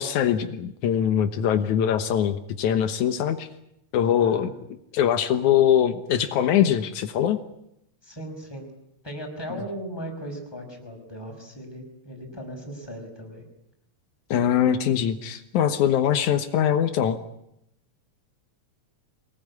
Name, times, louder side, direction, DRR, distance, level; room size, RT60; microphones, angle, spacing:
voice 1, 0.0-3.5 3.9-4.5 4.9-7.4 14.3-17.2, left 9 dB, 80° left, 9 dB, 2.5 m, -22 dB
voice 2, 4.2-4.5 8.0-8.7 9.0-13.4, equal, 5° left, 2 dB, 5.5 m, -37 dB
24.0 x 19.5 x 9.7 m, 0.79 s
omnidirectional pair, 3.4 m